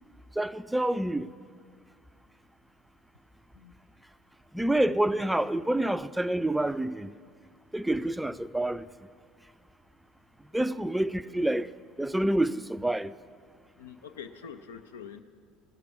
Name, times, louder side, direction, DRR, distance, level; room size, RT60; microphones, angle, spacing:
voice 1, 0.4-1.3 4.5-7.1 7.7-8.8 10.5-11.7 12.0-13.1, right 1 dB, 5° right, 0.3 m, -27 dB
voice 2, 13.8-15.2, left 7 dB, 75° left, 0.4 m, -45 dB
17.5 x 6.6 x 5.9 m
figure-of-eight pair, 65°, 0 cm